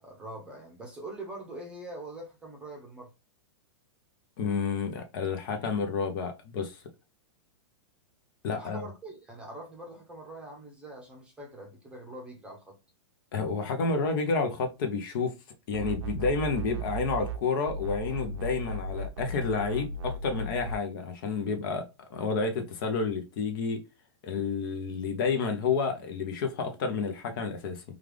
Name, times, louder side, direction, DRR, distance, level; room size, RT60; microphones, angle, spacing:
voice 1, 0.0-3.1 8.5-12.8, right 1 dB, 5° right, 0.8 m, -43 dB
voice 2, 4.4-6.8 8.4-8.9 13.3-15.3 15.7-23.8 24.2-27.8, left 4 dB, 50° left, 0.8 m, -30 dB
sound 1, 15.7-17.4 17.7-20.8, right 2 dB, 85° right, 0.6 m, -36 dB
3.3 x 2.4 x 3.3 m
supercardioid pair, 160°, 14 cm